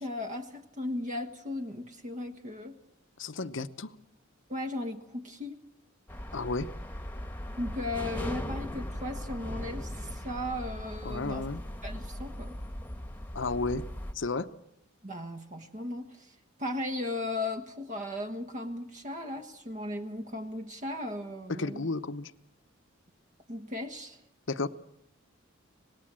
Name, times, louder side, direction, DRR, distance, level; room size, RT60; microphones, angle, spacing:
voice 1, 0.0-2.8 4.5-5.6 7.6-11.5 11.8-12.5 15.0-21.9 23.5-24.2, left 1 dB, 40° right, 1.3 m, -36 dB
voice 2, 3.2-3.9 6.3-6.7 11.0-11.6 13.3-13.8 14.1-14.5 21.6-22.3 24.5-24.7, left 3 dB, 65° left, 0.9 m, -32 dB
sound 1, 6.1-14.1, equal, 10° left, 1.3 m, -38 dB
26.0 x 19.0 x 7.6 m
head